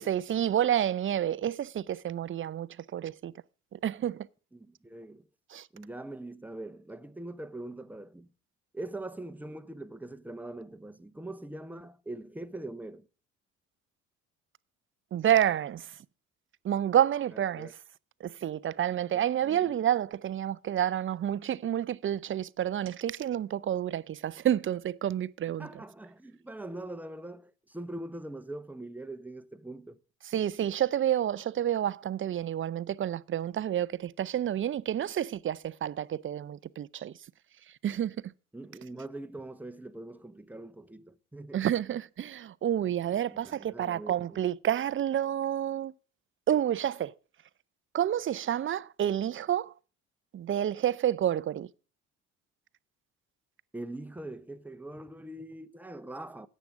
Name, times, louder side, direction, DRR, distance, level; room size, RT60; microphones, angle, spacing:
voice 1, 0.0-3.3 3.7-4.3 5.5-5.7 15.1-15.9 16.6-17.7 18.2-25.7 30.2-37.1 37.8-38.2 41.5-45.9 46.5-47.1 47.9-49.7 50.3-51.7, right 10 dB, 30° right, 0.6 m, -29 dB
voice 2, 4.5-5.3 5.7-8.3 8.7-13.1 17.3-17.7 19.1-19.8 25.6-30.0 38.5-41.7 43.3-44.4 53.7-56.5, right 1 dB, 5° right, 1.0 m, -42 dB
14.0 x 9.2 x 3.7 m
hypercardioid pair, 55°, 38 cm